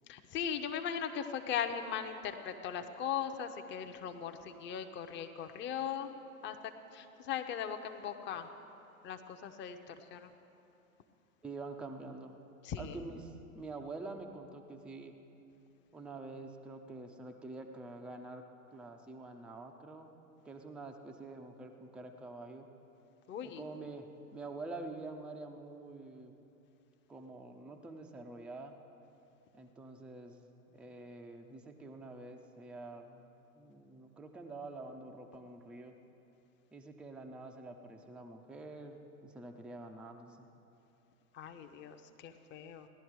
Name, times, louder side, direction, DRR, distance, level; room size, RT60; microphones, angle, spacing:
voice 1, 0.1-6.1 6.4-8.5 9.0-10.3 12.6-13.0 23.3-23.7 41.3-42.9, left 8 dB, 25° left, 7 dB, 0.8 m, -39 dB
voice 2, 11.4-12.4 12.8-15.2 15.9-18.4 18.7-20.1 20.4-22.7 23.4-26.4 27.1-28.7 29.5-36.0 36.7-40.5, right 3 dB, 5° right, 3 dB, 0.4 m, -47 dB
16.5 x 11.0 x 4.7 m, 2.8 s
figure-of-eight pair, 95°, 44 cm